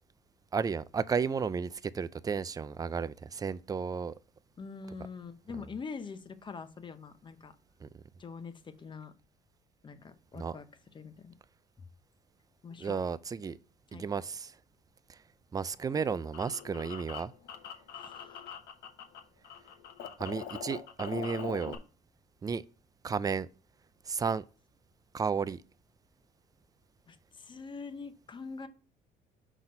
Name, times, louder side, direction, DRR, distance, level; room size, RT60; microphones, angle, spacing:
voice 1, 0.5-4.1 7.8-7.9 10.3-10.6 12.8-13.6 13.9-14.5 15.5-17.3 20.2-21.8 22.4-22.6 23.0-23.5 24.1-24.4 25.1-25.6, right 6 dB, 20° right, 0.3 m, -33 dB
voice 2, 4.6-7.5 8.2-9.1 9.8-10.6 10.9-11.3 12.6-13.0 13.9-14.0 17.9-18.5 27.1-28.7, left 5 dB, 30° left, 0.8 m, -44 dB
sound 1, 15.8-19.2 19.4-21.8, left 8 dB, 80° left, 1.0 m, -43 dB
6.0 x 4.0 x 5.2 m
cardioid pair, 110°, 17 cm